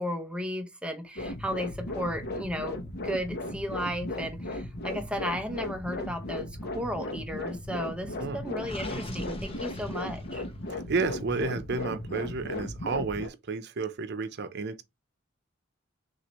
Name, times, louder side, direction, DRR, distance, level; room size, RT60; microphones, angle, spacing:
voice 1, 0.0-10.4, equal, 5° right, 0.7 m, -34 dB
sound 1, 1.2-13.3, left 1 dB, 55° left, 0.9 m, -36 dB
Gurgling, 8.6-10.7, left 1 dB, 30° left, 1.0 m, -40 dB
voice 2, 10.7-14.8, right 4 dB, 55° right, 0.7 m, -31 dB
6.2 x 2.6 x 3.0 m
head